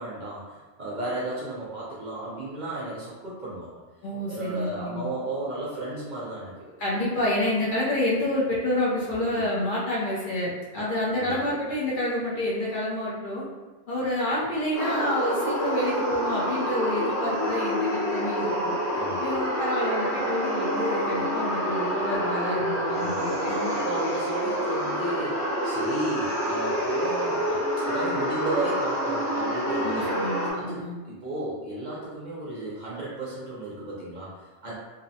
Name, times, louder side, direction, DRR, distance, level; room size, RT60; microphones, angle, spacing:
voice 1, 0.0-3.8 4.3-6.7 9.2-9.5 11.1-11.6 18.9-19.4 22.9-30.1 30.5-34.7, right 2 dB, 50° right, -6 dB, 0.6 m, -34 dB
voice 2, 4.0-5.0 6.8-13.4 13.9-18.8 19.2-23.7 29.8-31.0, left 1 dB, 55° left, -6 dB, 0.7 m, -28 dB
sound 1, 14.7-30.5, equal, 15° left, 0.8 m, -27 dB
2.7 x 2.0 x 2.6 m, 1.2 s
omnidirectional pair, 1.2 m